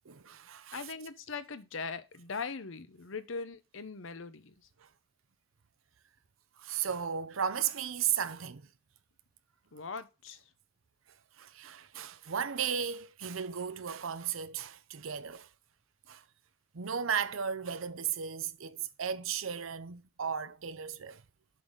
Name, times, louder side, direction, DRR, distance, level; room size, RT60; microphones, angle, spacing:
voice 1, 0.1-0.9 4.8-4.9 6.6-8.6 11.4-15.5 16.1-16.2 16.7-21.2, right 8 dB, 85° right, 0.7 m, -35 dB
voice 2, 0.7-4.5 9.7-10.4, left 4 dB, 80° left, 0.9 m, -40 dB
7.7 x 4.0 x 5.1 m
head